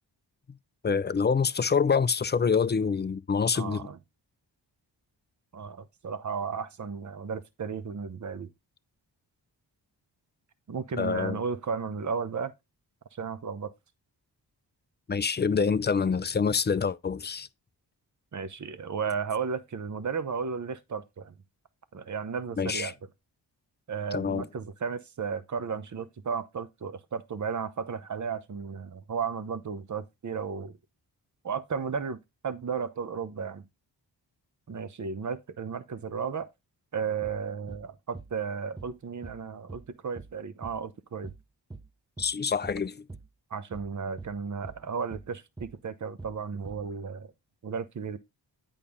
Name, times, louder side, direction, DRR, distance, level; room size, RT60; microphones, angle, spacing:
voice 1, 0.8-3.9 11.0-11.4 15.1-17.5 22.6-22.9 24.1-24.4 42.2-43.0, left 5 dB, 25° left, 0.4 m, -26 dB
voice 2, 3.5-4.0 5.5-8.5 10.7-12.5 13.2-13.7 18.3-21.3 21.9-22.9 23.9-30.8 31.4-33.6 34.7-36.5 36.9-41.3 43.5-47.3 47.6-48.2, right 6 dB, 40° right, 0.9 m, -34 dB
sound 1, 37.2-37.4 37.7-37.9 38.1-38.3 38.8-39.0 39.2-39.4 39.7-39.9 40.2-40.4 40.6-40.8 41.2-41.4 41.7-41.9 42.2-42.4 42.6-42.8 43.1-43.3 43.7-43.9 44.2-44.4 44.6-44.8 45.1-45.3 45.6-45.8 46.2-46.4 46.7-46.9, right 3 dB, 10° right, 0.8 m, -44 dB
8.4 x 5.5 x 3.6 m
cardioid pair, 50°, 44 cm